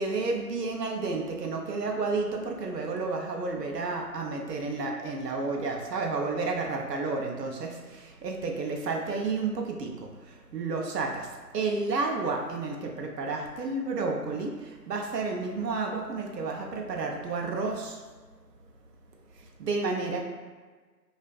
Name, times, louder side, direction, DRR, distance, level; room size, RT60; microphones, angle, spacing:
voice 1, 0.0-9.9 10.5-11.3 11.5-18.0 19.6-20.2, right 3 dB, 75° right, 1 dB, 0.6 m, -31 dB
2.4 x 2.3 x 2.2 m, 1.4 s
figure-of-eight pair, 170°, 50 cm